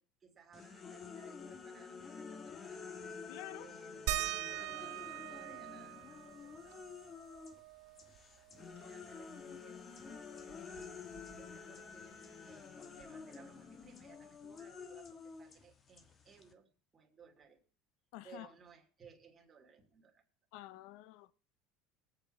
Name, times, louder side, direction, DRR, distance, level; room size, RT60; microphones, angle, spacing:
voice 1, 0.0-2.8 3.6-6.8 8.8-10.8 11.4-17.6 18.2-20.2, right 6 dB, 25° right, 2.6 m, -61 dB
sound 1, 0.5-7.6 8.0-16.5, left 5 dB, 30° left, 1.4 m, -50 dB
voice 2, 3.3-3.7 18.1-18.5 20.5-21.3, left 16 dB, 75° left, 0.5 m, -49 dB
sound 2, 4.1-9.2 9.5-9.6 10.0-11.7 13.0-13.1 13.8-13.9, right 13 dB, 75° right, 1.1 m, -43 dB
22.0 x 8.2 x 4.4 m
supercardioid pair, 120°, 0 cm